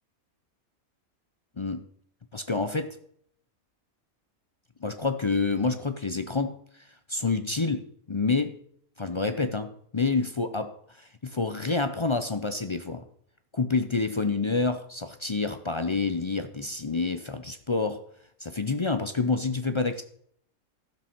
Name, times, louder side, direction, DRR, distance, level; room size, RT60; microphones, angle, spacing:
voice 1, 2.3-3.0 4.8-6.6 7.1-8.6 9.0-13.0 13.5-18.0 18.4-20.0, left 3 dB, 45° left, 9 dB, 0.3 m, -28 dB
13.0 x 7.5 x 6.0 m, 0.66 s
omnidirectional pair, 1.5 m